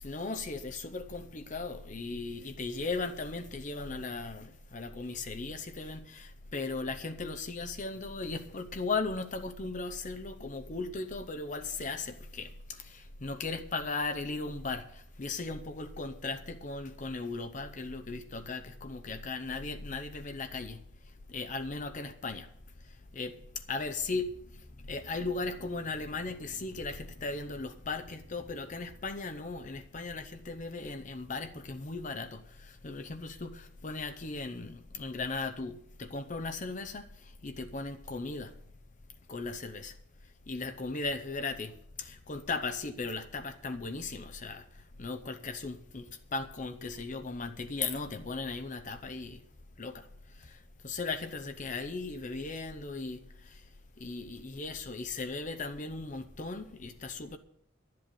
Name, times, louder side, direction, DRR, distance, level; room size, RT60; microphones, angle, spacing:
voice 1, 0.0-20.8 21.3-22.5 23.1-23.4 23.7-24.3 24.9-37.0 37.4-38.5 39.3-39.9 40.5-41.7 42.0-44.6 45.0-49.4 49.8-50.0 50.4-50.6 50.8-53.6 54.0-57.4, left 3 dB, 40° left, 0.7 m, -37 dB
11.5 x 7.7 x 8.9 m
head